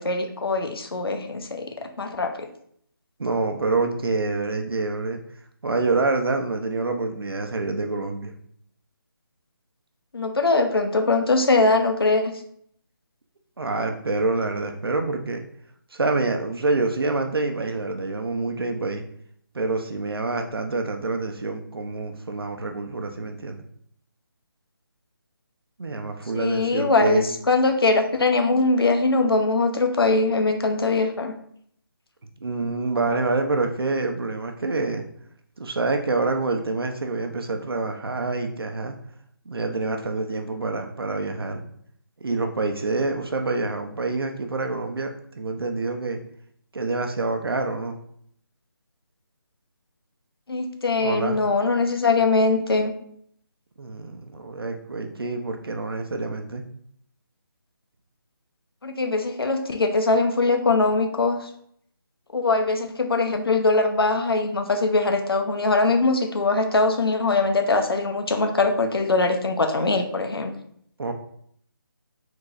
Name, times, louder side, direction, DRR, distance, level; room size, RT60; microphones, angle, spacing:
voice 1, 0.0-2.5 10.1-12.3 26.3-31.3 50.5-52.9 58.8-61.5 62.3-70.5, left 3 dB, 80° left, 6 dB, 0.8 m, -22 dB
voice 2, 3.2-5.2 5.6-8.3 13.6-15.4 15.9-19.0 19.5-23.6 25.8-27.2 32.4-35.0 35.6-38.9 39.5-41.6 42.2-45.1 45.4-46.2 46.7-48.0 51.0-51.4 53.8-56.6 71.0-71.1, right 3 dB, 80° right, 4 dB, 0.8 m, -26 dB
4.8 x 3.8 x 2.5 m, 0.67 s
figure-of-eight pair, 175°, 12 cm